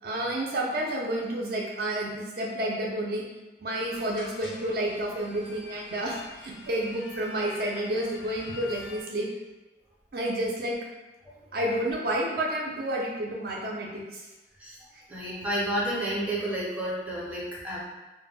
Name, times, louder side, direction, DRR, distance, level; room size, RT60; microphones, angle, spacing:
voice 1, 0.0-3.2 3.6-9.3 10.1-10.8 11.5-14.3 14.9-15.0, right 1 dB, 50° right, -2 dB, 0.5 m, -30 dB
sound 1, 3.9-9.0, left 3 dB, 70° left, 0.4 m, -46 dB
voice 2, 15.1-17.8, right 1 dB, 10° right, -7 dB, 0.6 m, -30 dB
2.1 x 2.0 x 3.3 m, 1.2 s
head